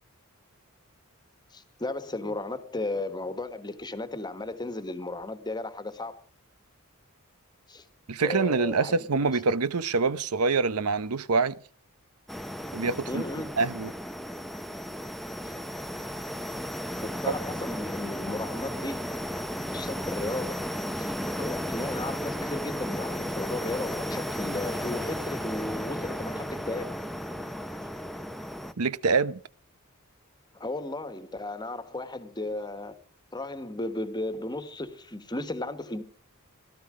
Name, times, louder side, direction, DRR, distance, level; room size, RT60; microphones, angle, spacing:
voice 1, 1.5-6.2 7.7-7.8 8.2-9.3 13.1-13.5 17.0-19.0 19.7-20.7 21.0-26.9 30.5-33.0 33.3-36.0, left 2 dB, 20° left, 1.4 m, -35 dB
voice 2, 8.1-11.5 12.7-13.2 13.6-13.9 17.3-17.4 28.8-29.4, right 4 dB, 85° right, 0.8 m, -25 dB
sound 1, 12.3-28.7, equal, ahead, 0.7 m, -34 dB
17.0 x 13.0 x 5.0 m
head